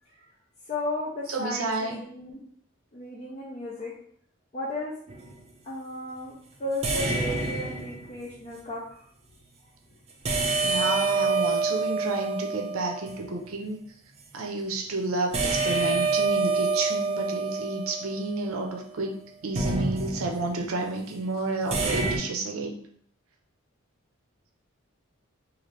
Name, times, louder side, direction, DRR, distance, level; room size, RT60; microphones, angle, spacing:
voice 1, 0.7-2.4 2.9-3.9 4.5-4.9 5.6-6.3 6.6-9.0, left 1 dB, 35° left, -5 dB, 0.5 m, -34 dB
voice 2, 1.3-1.9 10.6-13.8 14.3-19.1 19.4-22.7, right 2 dB, 85° right, 2 dB, 0.5 m, -30 dB
sound 1, 5.1-5.4 6.8-8.3 10.2-13.3 15.3-18.7 19.5-20.6 21.7-22.2, right 3 dB, 30° right, 0.5 m, -27 dB
2.7 x 2.5 x 3.2 m, 0.63 s
head